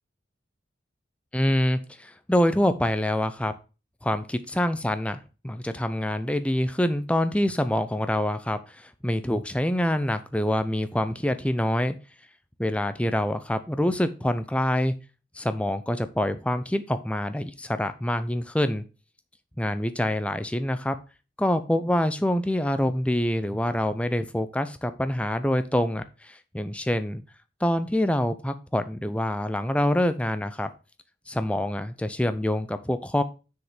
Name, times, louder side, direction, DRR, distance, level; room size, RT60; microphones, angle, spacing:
voice 1, 1.3-3.5 4.0-11.9 12.6-15.0 15.4-18.8 19.6-21.0 21.4-27.2 27.6-30.7 31.3-33.2, left 1 dB, 5° left, 10 dB, 0.5 m, -26 dB
6.5 x 5.1 x 5.0 m, 0.32 s
head